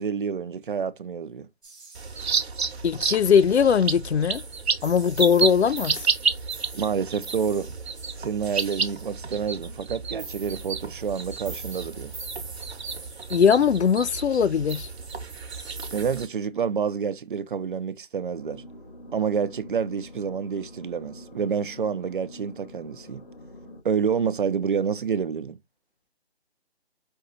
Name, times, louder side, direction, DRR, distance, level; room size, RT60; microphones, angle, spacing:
voice 1, 0.0-1.5 6.7-7.7 8.2-12.1 15.9-18.6 19.1-23.2 23.8-25.6, right 6 dB, 50° right, 0.6 m, -28 dB
sound 1, 1.6-16.3, right 4 dB, ahead, 0.6 m, -45 dB
sound 2, 1.9-16.2, right 5 dB, 75° right, 1.1 m, -31 dB
voice 2, 2.8-4.4 4.8-6.1 13.3-14.9, left 7 dB, 85° left, 0.6 m, -20 dB
sound 3, 18.3-23.8, left 1 dB, 60° left, 2.2 m, -45 dB
5.4 x 2.3 x 3.9 m
figure-of-eight pair, 155°, 32 cm